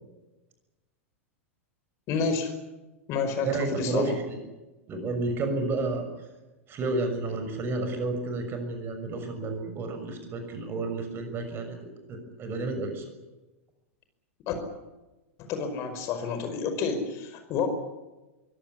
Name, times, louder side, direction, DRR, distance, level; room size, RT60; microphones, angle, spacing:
voice 1, 2.1-2.5 3.1-4.1 14.5-14.6 15.4-17.7, left 5 dB, 40° left, 8 dB, 5.2 m, -29 dB
voice 2, 3.4-4.4 4.9-6.0 6.7-11.8 12.1-13.0, right 3 dB, 30° right, 7 dB, 6.4 m, -31 dB
24.0 x 17.5 x 9.9 m, 1.1 s
figure-of-eight pair, 95°, 7 cm